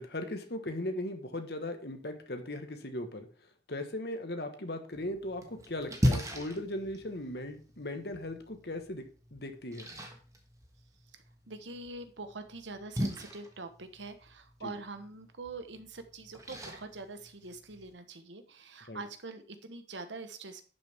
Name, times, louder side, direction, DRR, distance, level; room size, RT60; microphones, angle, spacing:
voice 1, 0.0-3.3 3.7-9.0 9.3-9.9 14.6-14.7 18.9-19.0, left 1 dB, 55° left, 6 dB, 1.4 m, -38 dB
Splash splatter, 4.9-17.9, equal, 15° right, 1.4 m, -38 dB
voice 2, 11.1-20.6, right 3 dB, 75° right, 9 dB, 1.2 m, -44 dB
11.5 x 6.8 x 3.5 m, 0.40 s
head